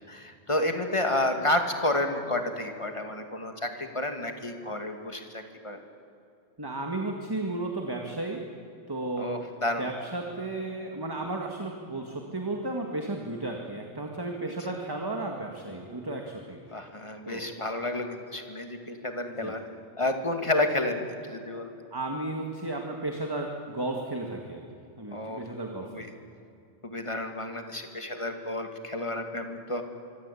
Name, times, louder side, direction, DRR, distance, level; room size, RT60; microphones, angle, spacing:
voice 1, 0.1-5.8 9.2-9.9 16.7-19.6 20.0-21.7 25.1-25.4 25.8-26.1 26.8-29.8, left 1 dB, 25° left, 5 dB, 2.5 m, -30 dB
voice 2, 6.6-8.4 8.9-9.3 9.8-16.6 17.3-17.5 19.3-19.5 21.9-24.6 25.0-26.0, right 2 dB, 20° right, 2 dB, 2.0 m, -34 dB
25.0 x 24.5 x 8.5 m, 2.6 s
omnidirectional pair, 1.2 m